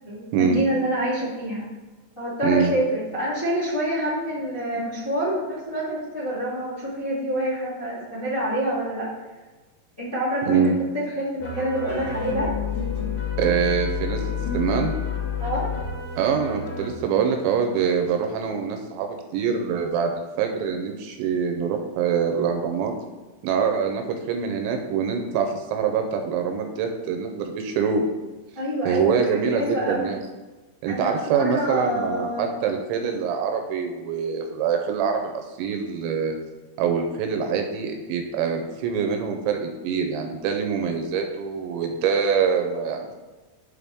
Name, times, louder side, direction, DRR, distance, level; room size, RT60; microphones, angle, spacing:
voice 1, 0.0-1.6 2.1-9.1 10.0-12.5 15.4-15.7 28.5-30.1 30.9-32.5, right 1 dB, 30° left, -9 dB, 1.0 m, -27 dB
sound 1, 11.4-16.9, left 6 dB, 70° left, 2.0 m, -29 dB
voice 2, 13.4-15.0 16.2-22.9 23.4-28.0 28.9-30.2 30.8-36.4 36.8-43.2, right 6 dB, 80° right, 4 dB, 2.9 m, -24 dB
12.5 x 4.5 x 3.6 m, 1.2 s
omnidirectional pair, 5.5 m